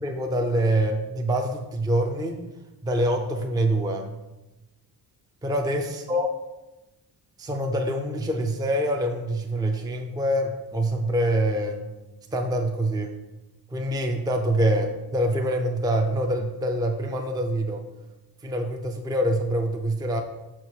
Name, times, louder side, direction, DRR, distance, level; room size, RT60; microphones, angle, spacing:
voice 1, 0.0-2.4 2.8-4.1 5.4-6.3 7.4-11.9 12.3-13.1 13.7-17.9 18.4-20.2, right 1 dB, 10° right, 3 dB, 0.5 m, -25 dB
6.4 x 4.5 x 6.6 m, 1.0 s
wide cardioid pair, 160°, 39 cm